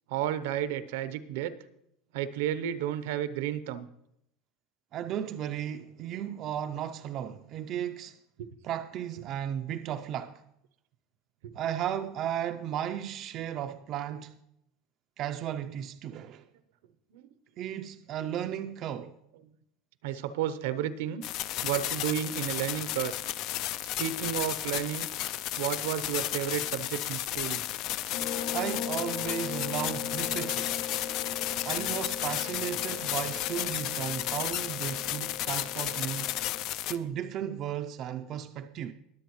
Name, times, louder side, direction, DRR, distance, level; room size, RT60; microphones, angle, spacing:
voice 1, 0.1-1.5 2.1-3.9 17.1-17.2 20.0-21.2 21.6-23.1 24.0-25.1 25.6-27.6 31.2-31.6 35.3-35.4, right 10 dB, 75° right, 0.7 m, -32 dB
voice 2, 4.9-8.2 8.6-10.4 11.5-14.4 15.2-16.4 17.6-19.1 28.5-30.8 31.6-36.4 36.9-38.9, right 10 dB, 35° right, 0.5 m, -35 dB
sound 1, 21.2-37.0, left 13 dB, 45° left, 0.4 m, -33 dB
sound 2, 28.1-36.6, left 7 dB, 70° left, 2.5 m, -39 dB
21.0 x 7.9 x 3.1 m
supercardioid pair, 165°, 0 cm